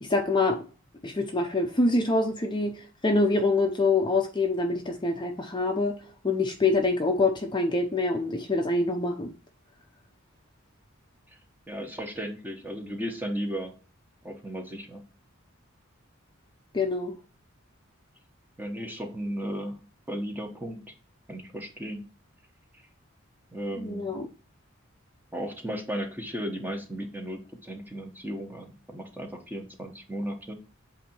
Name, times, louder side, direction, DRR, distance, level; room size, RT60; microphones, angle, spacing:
voice 1, 0.0-0.6 1.0-6.0 6.2-9.3 16.7-17.1 23.8-24.2, left 2 dB, 20° left, 3 dB, 0.7 m, -25 dB
voice 2, 11.7-13.8 14.2-15.0 18.6-19.8 20.1-20.9 21.3-22.1 23.5-24.2 25.3-30.6, equal, 10° right, 3 dB, 1.0 m, -35 dB
8.1 x 2.8 x 4.4 m, 0.36 s
head